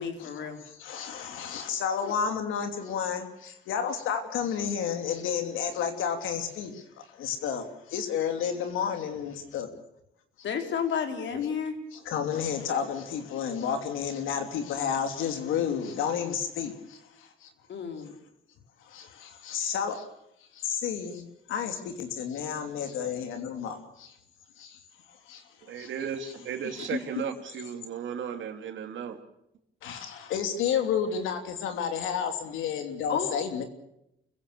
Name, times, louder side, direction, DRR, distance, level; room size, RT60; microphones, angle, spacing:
voice 1, 0.0-0.6 2.0-2.1 10.4-11.8 17.7-18.1 26.9-27.0 33.1-33.3, left 7 dB, 70° left, 5 dB, 4.0 m, -31 dB
voice 2, 0.8-9.7 11.9-17.5 18.8-20.0 20.5-24.2 24.6-24.8 25.3-25.9 29.8-33.6, left 7 dB, 90° left, 6 dB, 3.1 m, -31 dB
voice 3, 25.7-29.2, right 7 dB, 75° right, 6 dB, 2.8 m, -35 dB
29.0 x 16.0 x 6.8 m, 0.82 s
cardioid pair, 90°, 20 cm